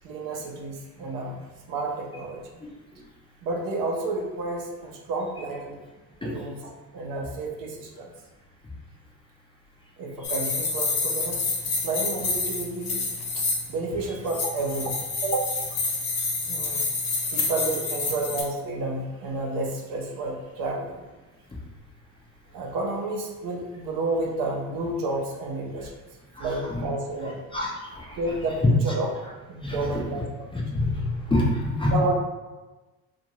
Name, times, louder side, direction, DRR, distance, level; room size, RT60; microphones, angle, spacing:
voice 1, 0.0-1.4 1.7-2.6 3.4-5.8 6.2-8.1 10.0-11.4 11.7-13.0 13.3-15.5 16.5-16.8 17.3-21.0 22.5-25.9 26.4-27.4 28.2-29.1 29.5-30.3 30.7-30.8 31.9-32.1, right 2 dB, 50° right, 0 dB, 0.7 m, -31 dB
sound 1, 10.2-13.7 14.3-18.4, left 3 dB, 60° left, 1.1 m, -28 dB
voice 2, 27.5-28.2 29.6-30.0 30.5-31.9, left 1 dB, 10° left, -4 dB, 0.6 m, -27 dB
2.6 x 2.5 x 3.0 m, 1.2 s
hypercardioid pair, 65°, 44 cm